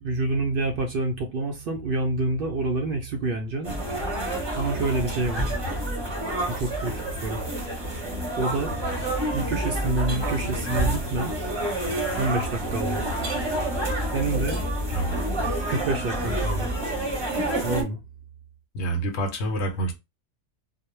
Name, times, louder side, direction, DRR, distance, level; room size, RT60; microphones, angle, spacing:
voice 1, 0.0-3.7 4.5-5.6 6.5-7.4 8.4-8.7 9.3-11.3 12.2-13.0 14.1-14.6 15.7-16.7 17.6-18.0, right 2 dB, 60° right, 0.6 m, -27 dB
sound 1, 3.6-17.8, right 1 dB, 25° right, 0.8 m, -28 dB
voice 2, 18.7-19.9, right 1 dB, 70° left, 0.9 m, -27 dB
2.3 x 2.1 x 3.0 m
omnidirectional pair, 1.3 m